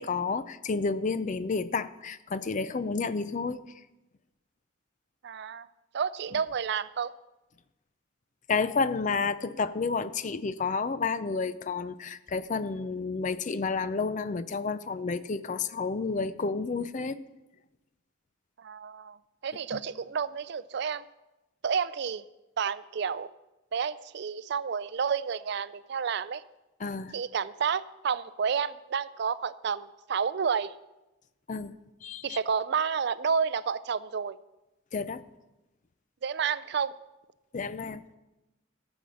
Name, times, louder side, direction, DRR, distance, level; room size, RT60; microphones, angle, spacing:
voice 1, 0.0-3.6 8.5-17.2 19.7-19.8 26.8-27.1 31.5-31.7 32.0-32.4 34.9-35.2 37.5-38.0, left 4 dB, 35° left, 14 dB, 0.4 m, -30 dB
voice 2, 5.2-5.7 5.9-7.1 18.6-19.2 19.4-21.0 21.6-22.2 22.6-23.3 23.7-26.4 27.1-30.7 32.2-34.4 36.2-36.9, right 6 dB, 55° right, 17 dB, 0.4 m, -30 dB
14.0 x 7.1 x 6.2 m, 1.0 s
head